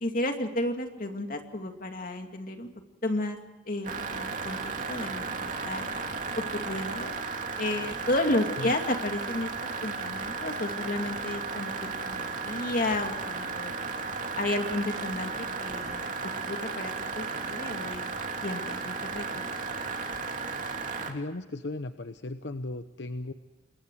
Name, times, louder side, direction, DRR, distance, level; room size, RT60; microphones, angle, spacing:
voice 1, 0.0-2.7 3.0-3.4 3.7-5.2 5.6-5.9 6.3-7.1 7.6-9.5 9.8-13.7 14.4-15.3 15.6-18.0 18.4-19.6, left 1 dB, 50° left, 5 dB, 2.5 m, -32 dB
sound 1, 3.8-21.1, right 4 dB, 45° right, 2.7 m, -34 dB
voice 2, 21.1-23.3, left 2 dB, 75° left, 9 dB, 0.9 m, -36 dB
27.5 x 22.5 x 4.8 m, 1.1 s
head